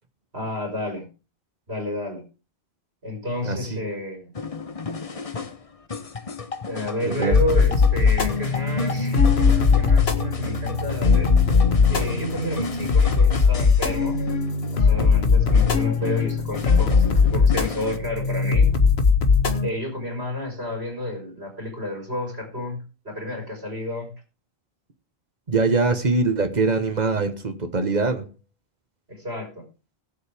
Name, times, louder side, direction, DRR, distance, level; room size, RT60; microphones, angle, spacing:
voice 1, 0.3-1.1 1.7-2.2 3.0-4.3 6.7-11.3 11.9-14.3 14.7-18.7 19.6-24.1 29.1-29.6, left 1 dB, 80° right, 5.2 m, -31 dB
voice 2, 3.4-3.8 7.0-7.4 25.5-28.3, right 3 dB, 45° right, 1.5 m, -23 dB
sound 1, 4.3-18.0, left 4 dB, 35° left, 1.0 m, -34 dB
sound 2, 7.3-19.7, left 5 dB, 75° left, 1.5 m, -19 dB
20.0 x 7.4 x 3.5 m
omnidirectional pair, 1.0 m